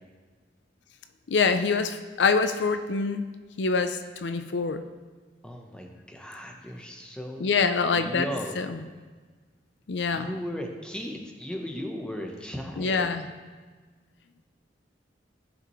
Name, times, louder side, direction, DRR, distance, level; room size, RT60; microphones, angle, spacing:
voice 1, 1.3-3.2 3.6-4.8 7.4-8.3 8.6-8.8 9.9-10.3 12.8-13.2, left 4 dB, 75° left, 9 dB, 0.5 m, -25 dB
voice 2, 5.4-7.5 7.9-8.5 10.1-13.1, equal, 5° left, 2 dB, 0.9 m, -36 dB
15.0 x 5.9 x 3.1 m, 1.4 s
head